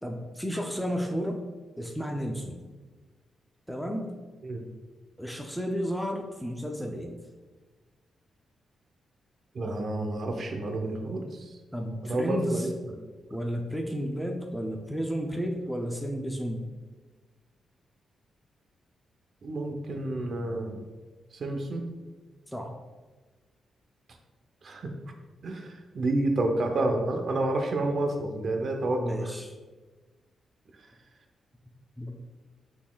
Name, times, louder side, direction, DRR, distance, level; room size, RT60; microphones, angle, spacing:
voice 1, 0.0-1.4 1.8-2.6 3.7-4.2 5.2-7.2 11.7-12.7 13.3-16.7 22.5-22.7 29.0-29.5 32.0-32.1, equal, ahead, 2 dB, 0.4 m, -32 dB
voice 2, 9.5-11.5 12.0-12.7 19.4-20.8 21.3-21.8 24.6-24.9 25.4-29.3, right 2 dB, 45° right, 4 dB, 0.6 m, -29 dB
5.9 x 4.0 x 2.2 m, 1.3 s
wide cardioid pair, 135°, 0 cm